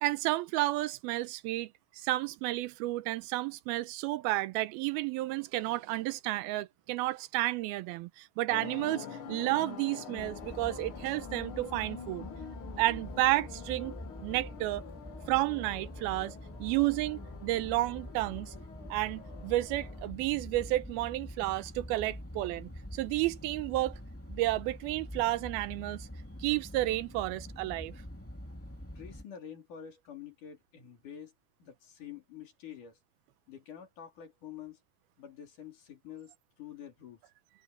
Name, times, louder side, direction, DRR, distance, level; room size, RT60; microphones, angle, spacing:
voice 1, 0.0-12.3 12.8-14.0 14.2-14.8 15.3-18.5 18.9-24.0 24.3-26.1 26.4-27.9, right 17 dB, 85° right, 2.6 m, -31 dB
sound 1, 8.5-20.1, left 7 dB, 75° left, 1.2 m, -46 dB
sound 2, 10.2-29.2, equal, 5° left, 1.7 m, -45 dB
voice 2, 29.0-31.3 31.6-33.0 33.5-34.8 35.2-37.2, left 9 dB, 55° left, 4.5 m, -47 dB
omnidirectional pair, 4.4 m